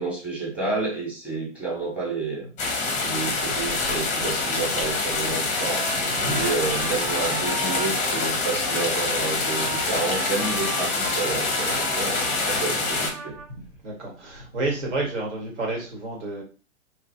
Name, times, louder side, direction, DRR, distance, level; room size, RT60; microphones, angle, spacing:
voice 1, 0.0-2.5 3.0-5.9 6.2-13.4, right 3 dB, 5° right, 1.0 m, -30 dB
sound 1, 2.6-13.1, left 3 dB, 20° left, 0.6 m, -26 dB
Trumpet, 5.1-13.5, right 5 dB, 35° right, 0.4 m, -37 dB
voice 2, 5.9-6.5 13.8-16.4, right 2 dB, 70° right, 1.5 m, -30 dB
3.1 x 2.4 x 2.6 m
figure-of-eight pair, 105°, 37 cm